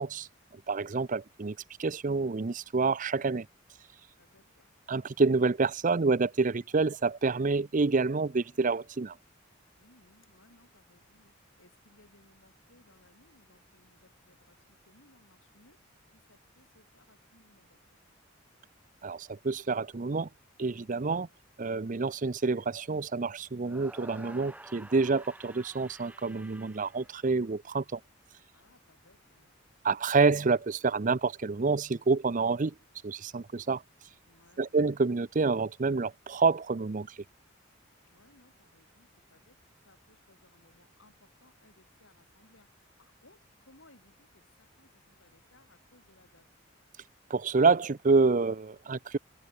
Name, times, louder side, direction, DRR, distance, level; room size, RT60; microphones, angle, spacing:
voice 1, 0.0-3.5 4.9-9.2 19.0-20.3 20.6-21.3 21.6-28.0 29.8-32.7 33.0-33.8 34.6-37.2 47.3-49.2, right 4 dB, 40° right, 0.6 m, -28 dB
voice 2, 4.2-4.7 9.8-18.2 28.5-29.5 34.2-34.8 38.1-46.5, left 2 dB, 70° left, 7.4 m, -64 dB
sound 1, 23.6-27.8, right 1 dB, 5° right, 1.2 m, -50 dB
open air
head